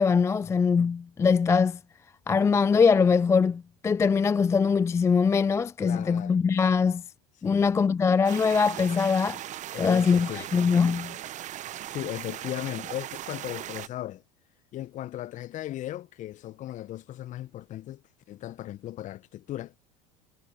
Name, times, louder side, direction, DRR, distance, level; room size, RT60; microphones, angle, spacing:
voice 1, 0.0-1.8 2.3-7.0 7.4-9.4 9.8-11.2, left 5 dB, 15° left, 0.4 m, -22 dB
voice 2, 5.8-6.4 7.4-7.8 9.7-10.5 11.9-14.2 14.7-18.0 18.3-19.7, left 13 dB, 40° left, 1.3 m, -37 dB
sound 1, 8.2-13.9, right 12 dB, 40° right, 1.4 m, -38 dB
hypercardioid pair, 75°, 19 cm